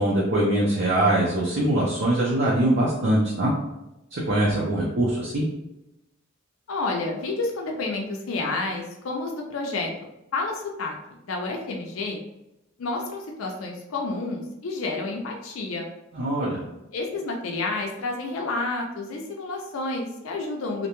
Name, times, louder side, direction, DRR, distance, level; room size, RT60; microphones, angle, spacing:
voice 1, 0.0-3.5 4.1-5.5 16.1-16.6, right 1 dB, 60° right, -5 dB, 0.6 m, -22 dB
voice 2, 6.7-9.9 10.3-11.0 11.2-12.2 12.8-15.9 16.9-20.9, left 3 dB, 90° left, 1 dB, 0.4 m, -30 dB
2.5 x 2.2 x 2.9 m, 0.92 s
head